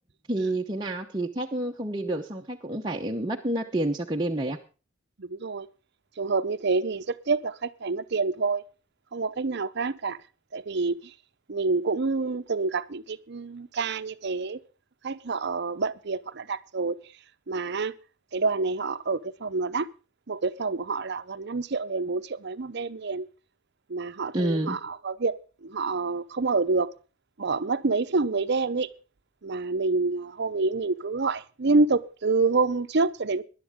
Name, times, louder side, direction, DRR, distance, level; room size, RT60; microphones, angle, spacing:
voice 1, 0.3-4.6 24.3-24.8, right 1 dB, 20° right, 0.9 m, -29 dB
voice 2, 5.2-5.7 6.2-8.6 9.1-10.2 10.5-11.0 11.5-14.6 15.0-17.0 17.5-17.9 18.3-19.9 20.3-23.2 23.9-26.9 27.4-28.9 29.4-33.4, right 3 dB, 55° right, 0.7 m, -27 dB
19.0 x 11.0 x 3.7 m
head